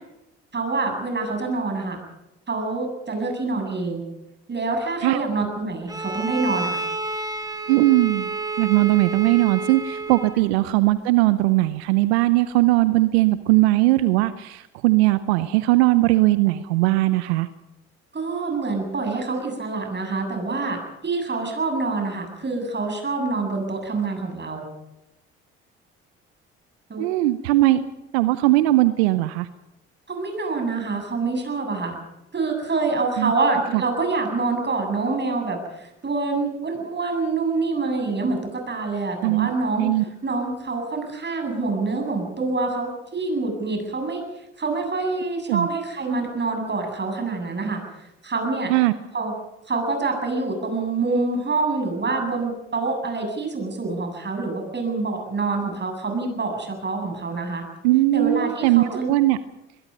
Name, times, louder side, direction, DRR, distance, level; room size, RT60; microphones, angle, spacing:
voice 1, 0.5-2.0 2.5-4.0 4.5-6.8 10.3-10.4 18.1-24.6 26.9-27.0 27.6-27.8 30.1-32.0 32.3-39.9 40.2-44.3 44.6-47.8 48.2-48.7 49.1-49.3 49.7-57.6 58.1-59.1, right 3 dB, 35° right, 4 dB, 7.9 m, -26 dB
Bowed string instrument, 5.9-10.5, right 3 dB, 10° right, 1.8 m, -30 dB
voice 2, 7.7-17.5 27.0-27.8 28.1-29.5 33.2-33.3 33.7-33.8 39.2-39.5 39.8-40.0 45.5-45.7 48.7-48.9 57.8-59.4, right 18 dB, 80° right, 13 dB, 0.8 m, -19 dB
22.5 x 22.0 x 5.5 m, 0.93 s
hypercardioid pair, 55°, 32 cm